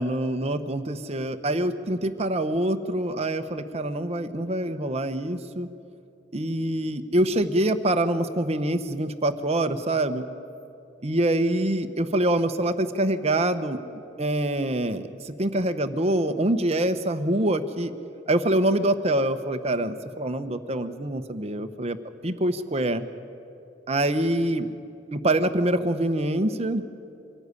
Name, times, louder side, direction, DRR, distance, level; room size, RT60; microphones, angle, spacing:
voice 1, 0.0-5.7 6.3-10.3 11.0-13.8 14.2-17.9 18.3-22.0 22.2-23.1 23.9-24.7 25.1-26.9, right 1 dB, 35° right, 9 dB, 0.9 m, -25 dB
24.0 x 13.5 x 9.7 m, 2.7 s
head